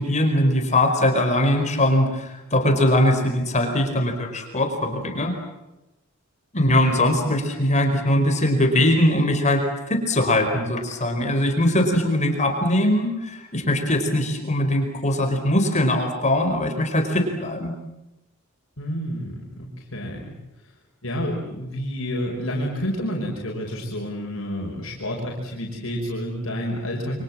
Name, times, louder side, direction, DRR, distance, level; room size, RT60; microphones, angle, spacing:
voice 1, 0.0-5.3 6.5-17.7, left 1 dB, 35° left, 4 dB, 4.8 m, -21 dB
voice 2, 18.8-20.4 21.0-27.2, equal, 70° left, -2 dB, 5.7 m, -29 dB
28.5 x 25.5 x 7.5 m, 0.94 s
head